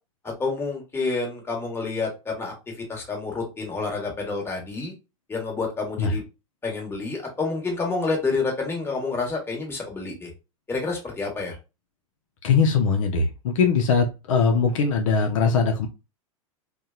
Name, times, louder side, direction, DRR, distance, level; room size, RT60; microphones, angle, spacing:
voice 1, 0.2-4.9 5.3-6.2 6.6-10.3 10.7-11.6, left 3 dB, 15° left, 1.1 m, -29 dB
voice 2, 12.4-15.9, left 5 dB, 65° left, 0.5 m, -21 dB
2.7 x 2.1 x 2.3 m
hypercardioid pair, 100°, 18 cm